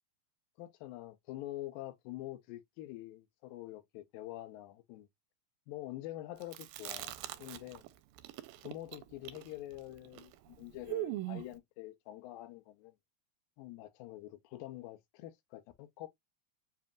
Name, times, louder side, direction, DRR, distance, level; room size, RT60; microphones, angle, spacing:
voice 1, 0.6-5.1 5.7-7.8 8.6-12.9 13.6-16.1, left 15 dB, 85° left, 2.4 m, -46 dB
Chewing mastication, 6.4-7.9 8.2-11.6, right 16 dB, 85° right, 2.3 m, -41 dB
7.3 x 2.8 x 2.3 m
omnidirectional pair, 4.0 m